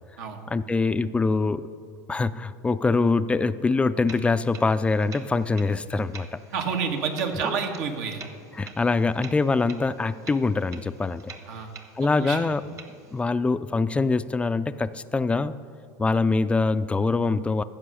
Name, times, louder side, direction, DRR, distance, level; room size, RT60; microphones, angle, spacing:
voice 1, 0.5-1.7 2.1-6.4 8.6-11.3 12.0-12.6 13.1-15.6 16.0-17.6, left 3 dB, 10° left, 13 dB, 0.3 m, -24 dB
sound 1, 4.1-13.2, right 4 dB, 30° right, 1.0 m, -45 dB
voice 2, 6.5-8.2 11.5-11.7 12.2-12.4, right 6 dB, 80° right, 4 dB, 1.4 m, -29 dB
15.0 x 5.5 x 6.3 m, 2.4 s
supercardioid pair, 115°, 10 cm